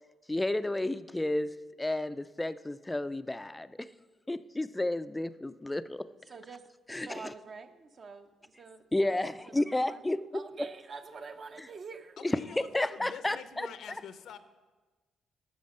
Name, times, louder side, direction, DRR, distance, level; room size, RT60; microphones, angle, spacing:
voice 1, 0.3-3.9 4.3-6.1 6.9-7.2 8.9-10.2 12.2-13.7, left 1 dB, 10° left, 0.4 m, -31 dB
voice 2, 6.3-10.1 10.3-12.2, right 4 dB, 45° right, 0.7 m, -47 dB
voice 3, 12.2-14.4, left 8 dB, 75° left, 0.7 m, -46 dB
11.5 x 6.9 x 5.4 m
cardioid pair, 90°, 0 cm